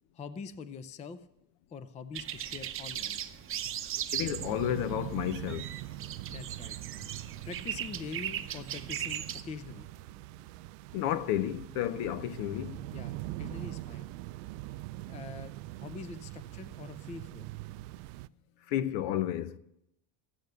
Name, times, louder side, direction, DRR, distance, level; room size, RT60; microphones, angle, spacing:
voice 1, 0.1-1.2 1.7-3.2 3.6-3.8 6.3-7.1 7.5-9.9 12.9-14.1 15.1-15.5 15.8-17.5, left 5 dB, 15° left, 0.4 m, -44 dB
sound 1, 2.1-9.4, right 11 dB, 30° right, 0.7 m, -38 dB
voice 2, 4.1-5.7 10.9-12.8 18.7-19.6, left 11 dB, 70° left, 0.9 m, -31 dB
sound 2, 4.2-18.3, right 17 dB, 80° right, 0.5 m, -43 dB
14.5 x 8.8 x 6.6 m
cardioid pair, 135°, 43 cm